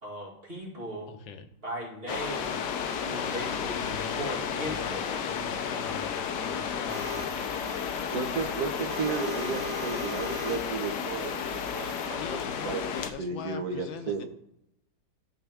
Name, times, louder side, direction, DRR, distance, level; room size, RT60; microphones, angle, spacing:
voice 1, 0.0-1.1 1.6-2.6 3.0-3.9 4.2-5.1, equal, 30° right, -4 dB, 2.4 m, -37 dB
voice 2, 1.1-1.5 3.9-7.4 12.1-14.2, left 6 dB, 90° left, 7 dB, 1.5 m, -42 dB
sound 1, 2.1-13.1, left 7 dB, 70° left, 1.2 m, -32 dB
Bowed string instrument, 3.4-8.4, left 4 dB, 20° left, 1.0 m, -52 dB
sound 2, 6.9-12.1, left 1 dB, 85° right, 1.8 m, -41 dB
voice 3, 7.9-12.9 13.2-14.2, right 5 dB, 55° right, 1 dB, 1.6 m, -34 dB
12.5 x 4.2 x 3.5 m, 0.79 s
omnidirectional pair, 2.1 m